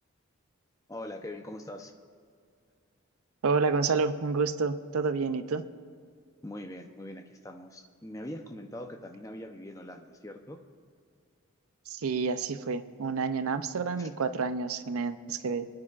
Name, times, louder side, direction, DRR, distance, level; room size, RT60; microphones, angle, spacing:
voice 1, 0.9-1.9 6.4-10.6 14.0-14.1, left 1 dB, 15° left, 4 dB, 0.6 m, -42 dB
voice 2, 3.4-5.7 11.9-15.7, right 4 dB, 80° right, 11 dB, 0.5 m, -29 dB
26.5 x 9.5 x 2.4 m, 2.1 s
head